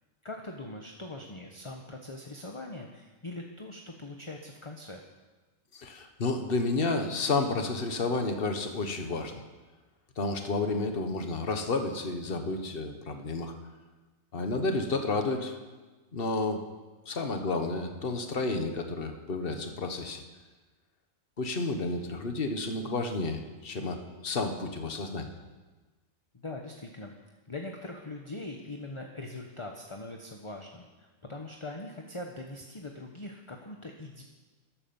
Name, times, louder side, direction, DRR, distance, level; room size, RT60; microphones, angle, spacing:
voice 1, 0.2-5.0 26.4-27.1 27.5-34.2, left 2 dB, 25° left, 2 dB, 1.1 m, -42 dB
voice 2, 5.7-9.4 10.2-13.5 14.3-15.6 16.1-16.7 17.0-20.2 21.4-25.3, left 3 dB, 45° left, 6 dB, 1.6 m, -31 dB
13.5 x 12.0 x 7.1 m, 1.2 s
omnidirectional pair, 1.4 m